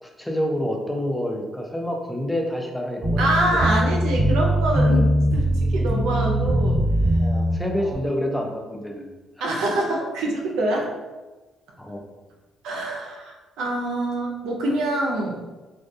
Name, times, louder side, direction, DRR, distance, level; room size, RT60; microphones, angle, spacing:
voice 1, 0.0-3.6 7.1-9.4 11.8-12.0, equal, 5° left, 1 dB, 0.4 m, -28 dB
sound 1, 3.0-7.6, equal, 15° right, 1.5 m, -21 dB
voice 2, 3.2-6.8 7.8-8.0 9.4-10.9 12.6-15.4, right 1 dB, 90° right, 0 dB, 0.5 m, -25 dB
2.3 x 2.2 x 2.6 m, 1.2 s
cardioid pair, 90°, 0 cm